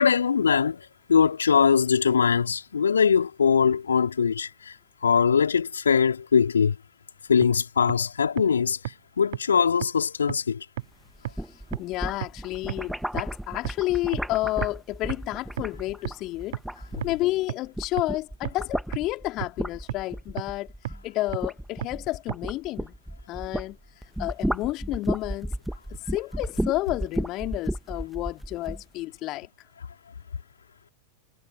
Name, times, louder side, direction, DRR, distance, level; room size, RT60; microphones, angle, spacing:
voice 1, 0.0-4.8 5.0-6.8 7.3-8.8 9.2-10.6 17.0-17.1, left 6 dB, 70° left, 4.4 m, -22 dB
sound 1, 7.4-7.5 7.9-8.0 8.4-8.5 8.9-9.0 9.3-9.4 9.8-9.9 10.3-10.4 10.8-10.9 11.3-11.4 11.7-11.8 12.2-12.3 12.7-12.8 13.2-13.3 13.7-13.8 14.1-14.2 14.6-14.7 15.1-15.2 15.6-15.7 16.1-16.2 16.5-16.6 17.0-17.1 17.5-17.6 18.0-18.1 18.5-18.6 18.9-19.0 19.4-19.5 19.9-20.0 20.4-20.5 20.9-21.0 21.3-21.4 21.8-21.9 22.3-22.4, right 13 dB, 55° right, 1.2 m, -30 dB
sound 2, 11.1-17.4 17.7-23.7 24.0-28.8, right 1 dB, ahead, 1.6 m, -33 dB
voice 2, 11.8-16.6 17.0-20.7 21.0-22.9 23.3-23.8 24.2-25.5 25.9-29.5, left 18 dB, 40° left, 3.3 m, -30 dB
figure-of-eight pair, 90°, 0 cm